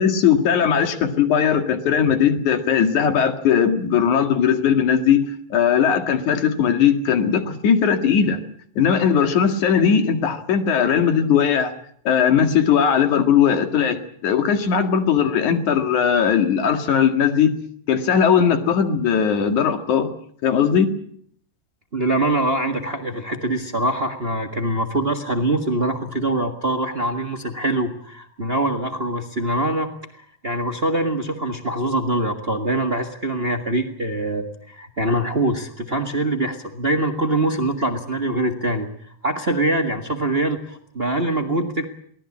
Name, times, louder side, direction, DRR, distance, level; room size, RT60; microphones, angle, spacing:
voice 1, 0.0-5.2 5.5-8.4 8.8-11.7 12.1-17.6 17.9-20.1 20.4-20.9, left 7 dB, 80° left, 7 dB, 3.4 m, -18 dB
voice 2, 21.9-29.9 30.4-41.8, right 1 dB, 25° right, 5 dB, 1.4 m, -23 dB
23.5 x 18.0 x 8.6 m, 0.63 s
omnidirectional pair, 3.4 m